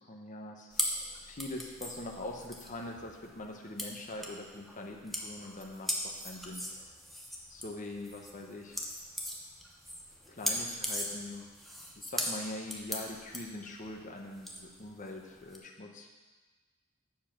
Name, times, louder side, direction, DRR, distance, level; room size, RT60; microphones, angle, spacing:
voice 1, 0.1-6.6 7.5-8.8 10.3-11.5 12.0-16.1, left 2 dB, 35° left, 1 dB, 0.9 m, -43 dB
sound 1, 0.7-15.6, equal, ahead, 0.9 m, -39 dB
7.5 x 7.0 x 5.9 m, 1.3 s
head